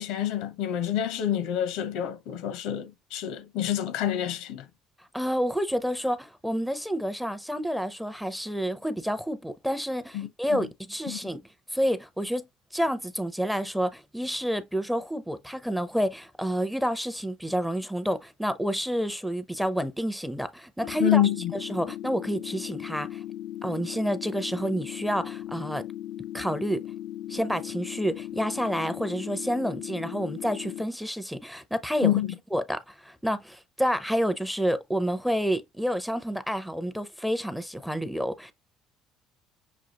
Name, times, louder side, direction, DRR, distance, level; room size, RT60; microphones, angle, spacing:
voice 1, 0.0-4.6 10.1-10.7 11.1-11.2 21.0-21.5 32.0-32.3, left 11 dB, 80° left, 0.8 m, -27 dB
voice 2, 5.1-11.4 11.7-12.5 12.7-21.2 21.6-23.2 23.6-25.9 26.3-26.8 27.3-32.1 32.5-38.5, equal, ahead, 0.5 m, -29 dB
sound 1, 20.8-30.8, left 13 dB, 65° left, 0.3 m, -38 dB
6.2 x 2.4 x 2.8 m
cardioid pair, 115°, 0 cm